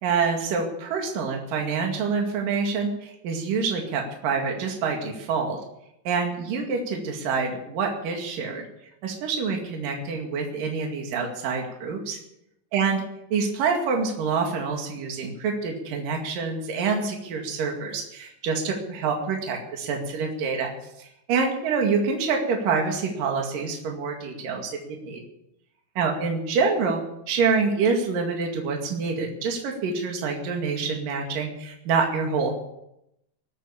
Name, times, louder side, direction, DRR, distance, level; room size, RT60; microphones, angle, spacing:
voice 1, 0.0-5.6 6.1-8.7 9.0-12.2 12.7-13.0 13.3-20.7 21.0-25.2 26.0-27.0 27.3-32.5, right 5 dB, 65° right, 2 dB, 3.7 m, -26 dB
20.0 x 9.3 x 7.1 m, 0.82 s
omnidirectional pair, 4.3 m